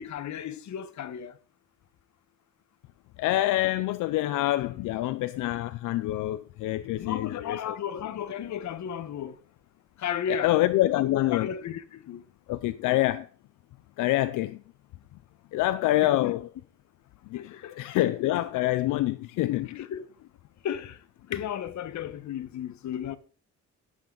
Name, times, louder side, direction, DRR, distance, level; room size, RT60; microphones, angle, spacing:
voice 1, 0.0-1.4 7.0-9.4 10.0-10.5 10.8-12.2 16.0-16.4 17.3-17.7 19.7-20.1 20.6-21.0 21.3-23.2, left 8 dB, 65° left, 1.3 m, -34 dB
voice 2, 3.2-7.8 10.3-11.5 12.5-13.3 14.0-14.6 15.5-16.5 17.3-19.9, left 15 dB, 90° left, 0.6 m, -26 dB
17.5 x 7.9 x 3.9 m
cardioid pair, 90°, 30 cm